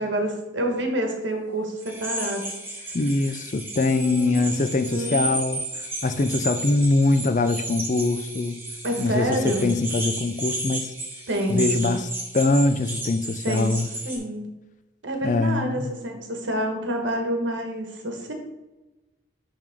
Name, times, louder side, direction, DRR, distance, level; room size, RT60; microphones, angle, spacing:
voice 1, 0.0-2.5 3.8-4.6 4.8-5.2 8.8-9.7 11.3-12.0 13.4-13.7 14.0-14.5 15.0-18.3, right 1 dB, 80° right, 3 dB, 1.4 m, -28 dB
sound 1, 1.8-14.2, right 2 dB, 10° right, 1.3 m, -33 dB
voice 2, 2.9-5.6 6.0-8.6 9.0-10.9 11.5-12.1 12.3-13.9 15.2-15.9, left 2 dB, 40° left, 11 dB, 0.4 m, -23 dB
10.5 x 3.5 x 3.6 m, 1.1 s
head